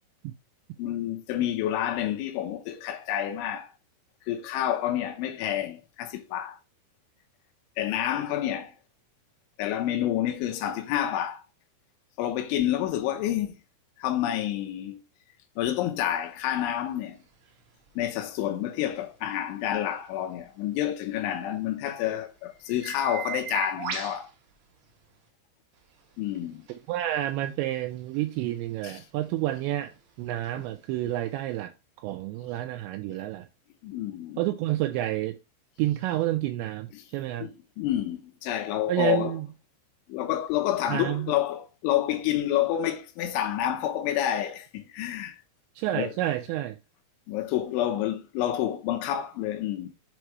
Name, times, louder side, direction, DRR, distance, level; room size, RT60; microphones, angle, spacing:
voice 1, 0.8-3.7 4.3-6.6 7.8-8.7 9.6-11.4 12.2-13.6 14.0-15.0 15.6-17.2 18.0-24.3 26.2-26.6 28.8-29.0 33.1-33.2 33.8-34.4 36.9-37.0 37.4-39.3 40.1-45.4 45.9-46.1 47.3-49.9, left 11 dB, 80° left, 3.3 m, -29 dB
sound 1, 16.1-25.3 25.7-31.6, right 8 dB, 65° right, 2.1 m, -43 dB
voice 2, 26.7-29.9 30.2-31.7 32.0-33.5 34.4-35.4 35.8-37.5 38.9-39.5 40.9-41.3 45.8-46.8, right 14 dB, 85° right, 2.6 m, -29 dB
7.4 x 3.1 x 4.6 m
omnidirectional pair, 5.4 m